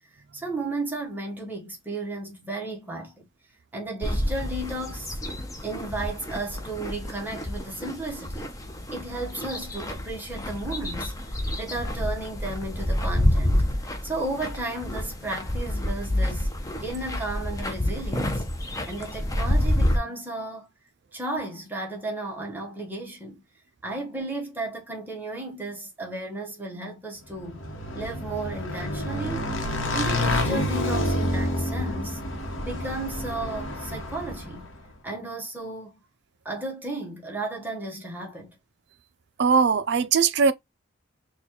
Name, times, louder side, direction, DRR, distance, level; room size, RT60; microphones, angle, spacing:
voice 1, 0.1-3.3 3.7-5.2 5.6-8.5 8.9-18.4 18.8-20.7 21.1-23.4 23.8-27.6 27.9-29.6 29.9-32.2 32.7-34.7 35.0-36.0 36.4-38.6, right 2 dB, 10° right, 0.9 m, -34 dB
sound 1, 4.0-20.0, left 1 dB, 15° left, 0.6 m, -28 dB
Motorcycle / Engine, 27.4-34.7, left 1 dB, 75° left, 1.0 m, -28 dB
voice 2, 39.4-40.5, right 5 dB, 55° right, 0.4 m, -20 dB
4.1 x 2.3 x 2.9 m
head